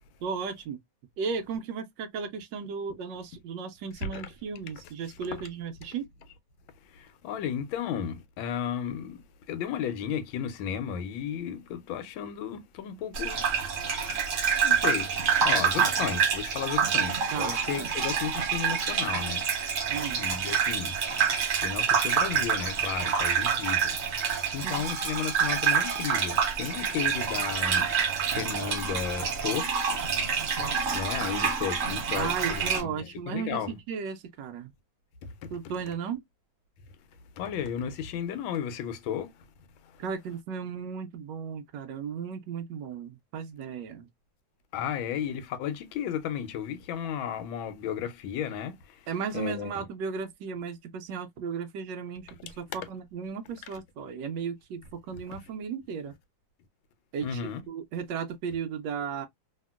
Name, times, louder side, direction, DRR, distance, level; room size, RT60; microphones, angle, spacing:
voice 1, 0.2-0.8 1.2-6.1 17.3-17.9 19.9-20.2 24.6-24.8 32.1-33.6 33.9-34.7 35.5-36.2 40.0-44.1 49.1-56.1 57.1-57.4 57.7-59.3, right 6 dB, 75° right, 1.1 m, -35 dB
voice 2, 6.8-13.4 14.1-14.2 14.6-19.5 19.8-21.0 21.3-30.0 30.4-30.7 30.9-33.7 35.2-35.5 37.4-39.5 39.8-40.0 44.7-49.1 49.3-49.7 57.2-57.6, left 8 dB, 85° left, 1.4 m, -34 dB
Gurgling / Bathtub (filling or washing), 13.1-32.8, right 7 dB, 55° right, 0.9 m, -27 dB
2.9 x 2.7 x 2.3 m
omnidirectional pair, 2.1 m